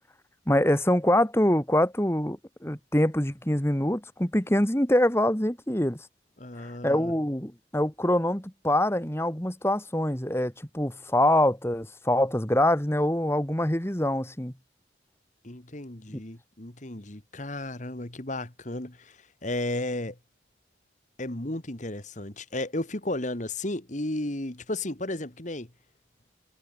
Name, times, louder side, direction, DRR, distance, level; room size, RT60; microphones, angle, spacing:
voice 1, 0.5-6.0 6.8-14.5, left 1 dB, 15° left, 2.3 m, -24 dB
voice 2, 6.4-7.1 15.4-20.2 21.2-25.7, left 1 dB, 40° left, 1.9 m, -34 dB
head